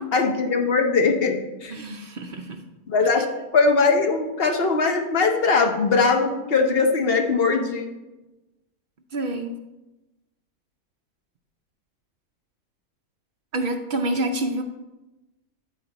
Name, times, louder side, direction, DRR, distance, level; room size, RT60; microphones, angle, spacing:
voice 1, 0.1-1.7 2.9-3.3 3.5-7.9, left 4 dB, 45° left, 3 dB, 1.0 m, -20 dB
voice 2, 1.7-2.6 9.1-9.5 13.5-14.6, right 1 dB, 55° right, 5 dB, 0.6 m, -27 dB
13.0 x 4.4 x 4.0 m, 1.0 s
omnidirectional pair, 1.6 m